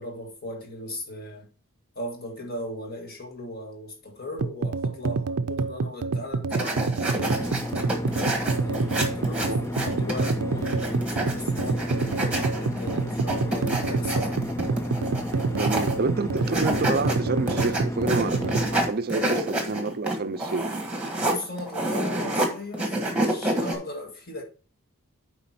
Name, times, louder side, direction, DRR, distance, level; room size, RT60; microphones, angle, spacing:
voice 1, 0.0-1.5 2.0-7.3 8.2-14.4 21.2-24.4, left 1 dB, 45° left, 1.8 m, -38 dB
sound 1, 4.4-18.7, right 4 dB, 90° right, 0.5 m, -28 dB
sound 2, 6.5-10.3 10.6-16.0 16.4-17.1 17.5-22.5 22.7-23.8, right 1 dB, 5° right, 1.4 m, -28 dB
sound 3, 7.2-18.9, left 1 dB, 10° left, 0.4 m, -32 dB
voice 2, 15.5-20.8, right 3 dB, 45° right, 0.5 m, -29 dB
8.3 x 4.9 x 4.3 m
head